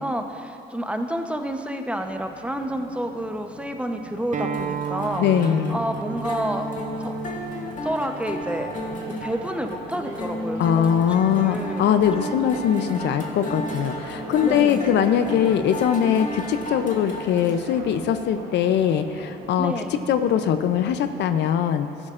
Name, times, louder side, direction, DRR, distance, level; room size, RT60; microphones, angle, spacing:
voice 1, 0.0-5.2 5.7-6.7 7.0-7.1 7.8-8.7 9.2-10.8 11.4-11.7 12.2-12.3 14.4-15.0 19.6-20.0, right 1 dB, 5° right, 5 dB, 0.8 m, -29 dB
sound 1, 2.0-21.4, right 4 dB, 80° right, 1.2 m, -41 dB
Acoustic guitar, 4.3-9.5, right 8 dB, 40° right, 0.4 m, -35 dB
sound 2, 4.4-17.6, left 1 dB, 45° left, 1.7 m, -33 dB
voice 2, 5.2-5.8 10.6-22.1, left 9 dB, 75° left, 10 dB, 0.6 m, -22 dB
13.5 x 11.0 x 2.5 m, 2.5 s
supercardioid pair, 70°, 18 cm